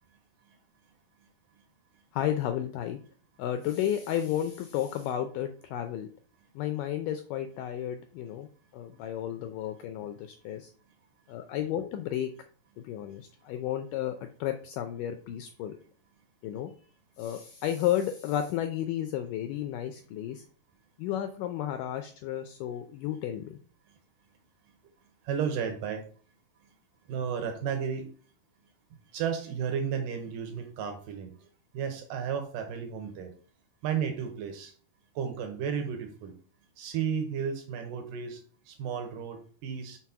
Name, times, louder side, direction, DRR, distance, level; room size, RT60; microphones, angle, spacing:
voice 1, 2.1-3.0 3.4-6.1 6.6-10.7 11.3-12.3 12.8-15.8 16.4-16.7 17.2-20.4 21.0-23.6, left 11 dB, 85° left, 8 dB, 1.9 m, -32 dB
voice 2, 25.2-26.0 27.1-28.1 29.1-31.5 31.7-33.3 33.8-34.7 35.2-36.4 36.8-38.4 38.7-40.0, right 7 dB, 70° right, 5 dB, 2.3 m, -33 dB
6.1 x 4.0 x 5.6 m, 0.43 s
omnidirectional pair, 4.4 m